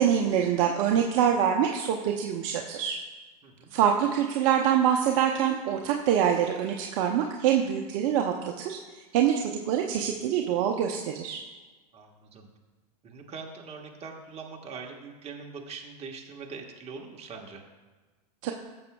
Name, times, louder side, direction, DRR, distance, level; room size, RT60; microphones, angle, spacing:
voice 1, 0.0-3.0 3.7-11.4 18.4-18.5, right 9 dB, 55° right, 3 dB, 0.7 m, -25 dB
voice 2, 11.9-12.5 13.0-17.6, right 5 dB, 30° right, 1 dB, 1.4 m, -42 dB
13.5 x 7.0 x 2.3 m, 1.3 s
hypercardioid pair, 100°, 20 cm